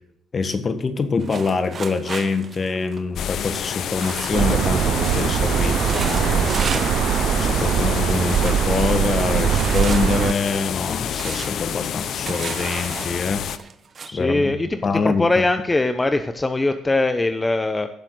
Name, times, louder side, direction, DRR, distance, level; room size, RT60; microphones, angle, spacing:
voice 1, 0.3-13.4 14.1-14.6 14.8-15.2, left 4 dB, 40° left, 10 dB, 1.5 m, -25 dB
sound 1, 1.2-4.7 5.0-5.3 5.6-7.0 7.3-7.9 8.3-8.7 9.4-14.1, right 5 dB, 45° right, 1.2 m, -34 dB
sound 2, 3.2-13.6, left 9 dB, 65° left, 0.7 m, -28 dB
sound 3, 4.3-10.3, right 9 dB, 65° right, 0.4 m, -21 dB
voice 2, 14.0-17.9, left 2 dB, 20° left, 9 dB, 0.9 m, -21 dB
17.0 x 7.4 x 3.9 m, 0.79 s
supercardioid pair, 70°, 0 cm